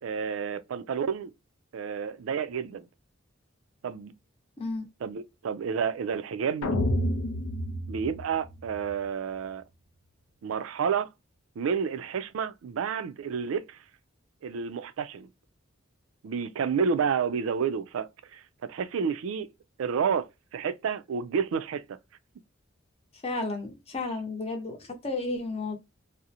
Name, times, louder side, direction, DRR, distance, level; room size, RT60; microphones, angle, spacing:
voice 1, 0.0-1.3 1.7-2.9 3.8-4.1 5.0-6.7 7.9-9.6 10.4-11.1 11.6-13.8 14.4-15.3 16.2-19.5 19.8-22.0, right 6 dB, 80° right, 0.4 m, -30 dB
sound 1, 6.6-8.9, left 1 dB, 90° left, 0.4 m, -29 dB
voice 2, 23.2-25.8, left 3 dB, 30° left, 0.7 m, -32 dB
2.5 x 2.0 x 2.7 m
head